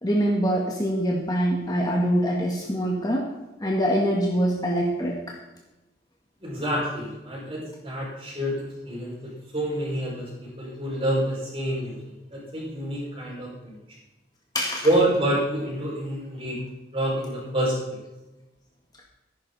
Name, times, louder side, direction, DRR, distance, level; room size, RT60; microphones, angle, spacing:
voice 1, 0.0-3.3 3.6-5.4 14.5-14.9, equal, 20° left, -1 dB, 1.7 m, -24 dB
voice 2, 6.4-12.0 12.3-14.0 14.8-16.6 16.9-18.0, right 1 dB, 30° right, -4 dB, 6.0 m, -27 dB
15.0 x 11.5 x 4.2 m, 1.0 s
head